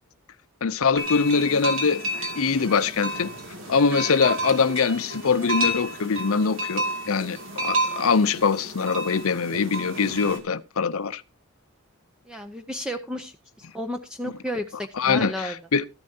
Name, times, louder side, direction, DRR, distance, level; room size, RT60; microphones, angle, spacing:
voice 1, 0.6-3.3 3.7-11.2 15.0-15.9, left 5 dB, 70° left, 0.6 m, -23 dB
sound 1, 1.0-10.4, right 1 dB, 55° right, 2.5 m, -31 dB
voice 2, 12.3-15.6, equal, 5° right, 0.6 m, -33 dB
13.5 x 11.0 x 2.8 m
head